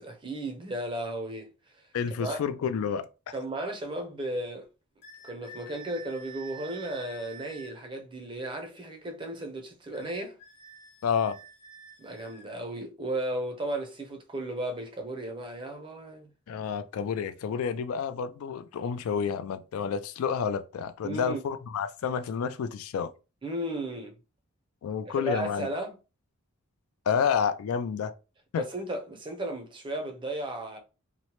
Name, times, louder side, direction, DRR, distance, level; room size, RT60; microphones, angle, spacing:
voice 1, 0.0-1.8 2.2-2.4 3.3-4.7 5.2-10.3 12.0-16.3 21.0-21.4 23.4-24.2 25.1-26.0 28.6-30.8, right 1 dB, 20° right, 0.4 m, -35 dB
voice 2, 1.9-3.1 11.0-11.4 16.5-23.1 24.8-25.7 27.1-28.1 28.5-28.6, left 7 dB, 80° left, 0.3 m, -29 dB
sound 1, 5.0-7.8 9.9-12.5, right 3 dB, 50° left, 0.9 m, -49 dB
2.9 x 2.0 x 2.9 m
head